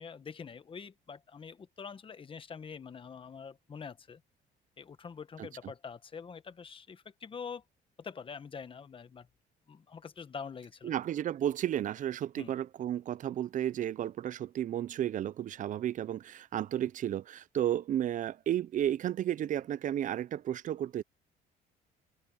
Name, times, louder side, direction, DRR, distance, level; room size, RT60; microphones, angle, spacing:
voice 1, 0.0-4.2 4.8-7.6 8.0-9.3 9.7-10.9 12.4-12.6, left 6 dB, 30° left, 1.3 m, -45 dB
voice 2, 10.8-21.0, right 11 dB, 50° right, 0.6 m, -33 dB
cardioid pair, 110°, 17 cm